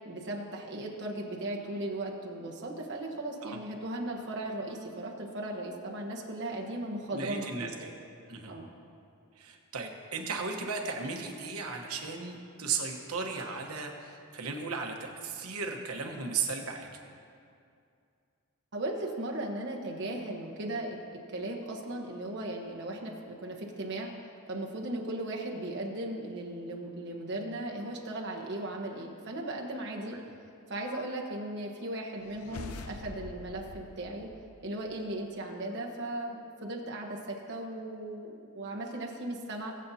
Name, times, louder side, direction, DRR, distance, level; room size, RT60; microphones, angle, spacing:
voice 1, 0.0-7.9 8.5-8.7 18.7-21.0 21.3-24.1 24.5-30.2 30.7-34.3 34.6-39.7, right 1 dB, 55° right, -1 dB, 1.2 m, -37 dB
voice 2, 7.1-7.9 8.3-8.5 9.4-16.9, right 4 dB, 90° right, 3 dB, 1.1 m, -36 dB
sound 1, 32.2-35.0, left 3 dB, 85° left, 0.6 m, -45 dB
19.5 x 7.6 x 2.8 m, 2.5 s
head